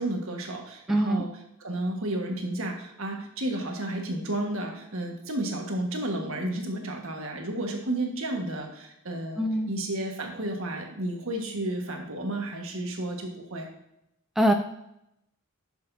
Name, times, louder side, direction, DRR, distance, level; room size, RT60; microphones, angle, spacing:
voice 1, 0.0-1.3 1.6-13.7, right 1 dB, 65° right, 2 dB, 1.5 m, -32 dB
voice 2, 0.9-1.2 9.4-9.7 14.4-14.5, right 1 dB, ahead, 3 dB, 0.4 m, -23 dB
11.0 x 6.8 x 2.7 m, 0.82 s
head